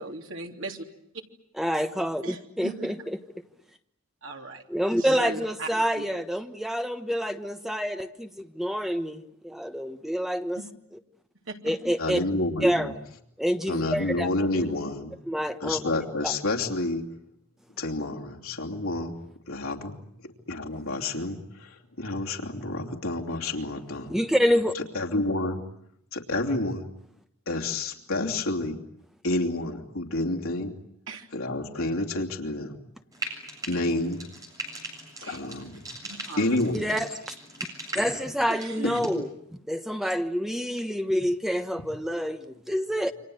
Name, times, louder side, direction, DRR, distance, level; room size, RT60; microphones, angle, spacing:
voice 1, 0.0-0.8 2.2-2.9 4.2-4.6 5.0-5.7 5.9-6.0 10.5-10.7 11.5-11.7 31.1-31.3 35.2-35.4 36.0-36.6 38.5-39.0, right 3 dB, 65° right, 3 dB, 3.4 m, -38 dB
voice 2, 1.6-3.2 4.7-10.6 11.6-12.2 12.6-12.9 13.4-14.3 15.3-15.8 16.2-16.3 24.1-24.7 36.7-37.3 37.9-39.3 39.7-43.1, equal, ahead, 7 dB, 1.2 m, -27 dB
voice 3, 12.0-12.9 13.7-15.2 15.6-17.0 17.8-19.2 19.5-20.0 20.2-24.1 24.7-25.6 26.1-26.9 27.5-28.8 29.2-30.7 31.3-32.8 33.6-34.2 35.2-35.8 36.4-36.9 38.8-39.2, left 2 dB, 80° left, 1 dB, 3.0 m, -29 dB
Frying (food), 33.1-39.1, right 1 dB, 15° right, 7.7 m, -40 dB
29.0 x 25.5 x 7.9 m, 0.73 s
head